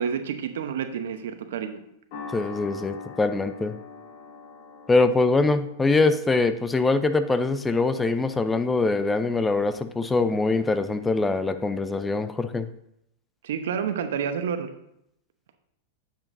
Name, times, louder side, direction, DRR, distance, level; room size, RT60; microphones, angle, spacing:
voice 1, 0.0-1.8 13.4-14.7, right 7 dB, 70° right, 8 dB, 0.9 m, -29 dB
sound 1, 2.1-10.6, left 4 dB, 55° left, 1.8 m, -45 dB
voice 2, 2.3-3.7 4.9-12.7, left 3 dB, 15° left, 11 dB, 0.5 m, -23 dB
10.0 x 7.1 x 2.7 m, 0.76 s
hypercardioid pair, 100°, 0 cm